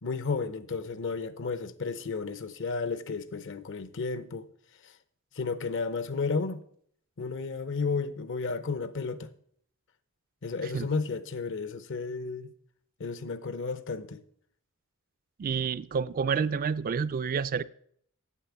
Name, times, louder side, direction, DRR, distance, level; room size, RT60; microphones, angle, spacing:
voice 1, 0.0-4.5 4.8-4.9 5.3-6.6 7.2-9.3 10.4-12.5 13.0-14.2, left 4 dB, 60° left, 0.8 m, -33 dB
voice 2, 15.4-17.6, right 6 dB, 40° right, 0.3 m, -29 dB
8.5 x 8.3 x 7.1 m
head